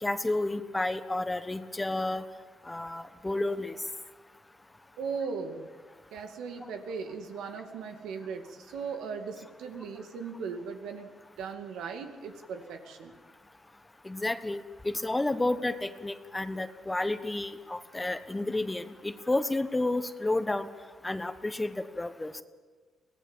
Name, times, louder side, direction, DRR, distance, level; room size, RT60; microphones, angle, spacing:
voice 1, 0.0-2.2 2.7-3.7 14.0-14.6 15.0-20.7 21.0-22.3, left 2 dB, 15° left, 10 dB, 1.2 m, -31 dB
voice 2, 5.0-5.7 6.1-13.2, right 5 dB, 85° right, 5 dB, 2.4 m, -38 dB
23.5 x 18.0 x 7.4 m, 1.4 s
cardioid pair, 90°, 0 cm